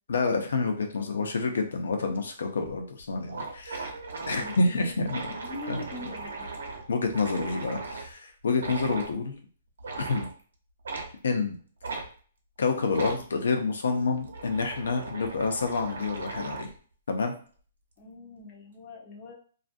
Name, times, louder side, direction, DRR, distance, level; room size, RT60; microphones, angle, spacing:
voice 1, 0.1-4.0 4.3-5.2 5.7-5.8 6.9-9.3 10.0-10.3 11.2-11.6 12.6-16.7 17.1-17.3, left 4 dB, 80° left, 4 dB, 0.6 m, -28 dB
sound 1, 2.6-2.7 3.0-3.1 3.3-8.1 8.6-9.1 9.8-10.3 10.8-11.1 11.8-12.1 12.9-13.2 14.0-16.8, right 3 dB, 85° right, 0.7 m, -38 dB
voice 2, 4.4-6.5 18.0-19.3, left 2 dB, 20° left, -1 dB, 0.4 m, -43 dB
2.5 x 2.4 x 2.5 m, 0.43 s
hypercardioid pair, 180°, 0 cm